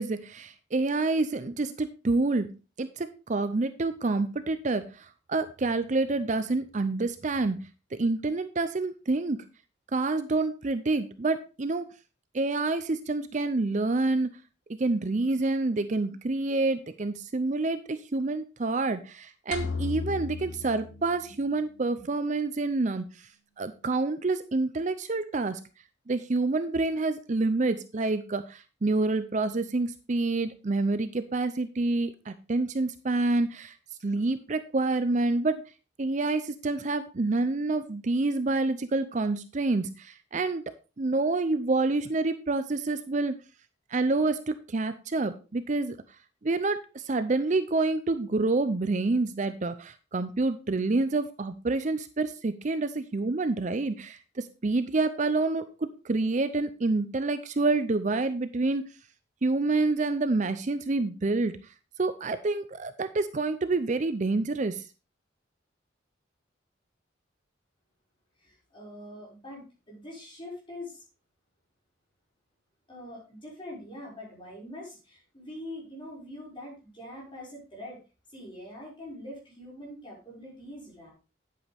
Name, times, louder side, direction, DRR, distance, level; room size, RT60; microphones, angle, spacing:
voice 1, 0.0-2.5 2.8-7.6 7.9-9.4 9.9-11.8 12.3-14.3 14.8-23.3 23.6-25.6 26.1-33.7 34.0-35.6 36.0-40.6 41.0-43.4 43.9-46.0 46.4-58.9 59.4-61.6 62.0-64.8, right 3 dB, 40° right, 11 dB, 0.5 m, -28 dB
sound 1, 19.5-21.8, left 4 dB, 85° left, 1.2 m, -35 dB
voice 2, 68.4-71.0 72.9-78.0 78.3-81.1, left 1 dB, 25° left, -4 dB, 5.7 m, -43 dB
9.7 x 8.5 x 3.5 m, 0.31 s
head